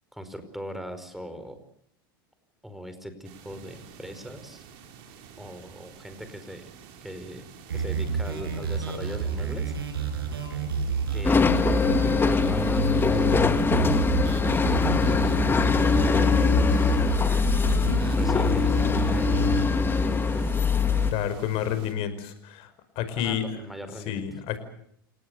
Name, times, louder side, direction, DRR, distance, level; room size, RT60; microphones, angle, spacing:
voice 1, 0.1-1.6 2.6-4.6 5.4-6.6 7.0-7.5 7.7-10.1 11.1-12.0 12.3-13.6 15.7-17.0 18.1-19.4 19.7-20.7 23.1-24.2, equal, ahead, 9 dB, 4.9 m, -40 dB
sound 1, 3.2-21.9, right 7 dB, 55° right, 5.1 m, -49 dB
sound 2, 7.7-19.7, right 4 dB, 85° right, 7.6 m, -30 dB
sound 3, 11.2-21.1, left 4 dB, 20° left, 1.9 m, -22 dB
voice 2, 21.1-22.7 23.0-23.4 24.1-24.6, left 10 dB, 55° left, 11 dB, 5.2 m, -29 dB
29.0 x 18.5 x 8.1 m, 0.68 s
hypercardioid pair, 100°, 12 cm